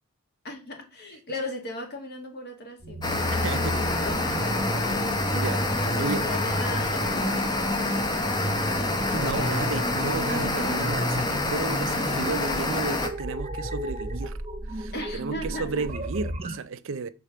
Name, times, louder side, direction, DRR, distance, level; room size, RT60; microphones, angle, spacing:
voice 1, 0.4-5.0 5.8-9.7 14.9-15.8, left 2 dB, 50° left, 1.6 m, -38 dB
sound 1, 2.8-16.6, equal, 25° right, 0.9 m, -32 dB
sound 2, 3.0-13.1, left 2 dB, 20° left, 0.9 m, -27 dB
voice 2, 3.1-3.8 4.8-5.0 5.3-5.6 6.0-6.2 9.1-14.4 14.7-17.1, right 4 dB, 60° right, 0.5 m, -33 dB
5.1 x 4.1 x 5.6 m
head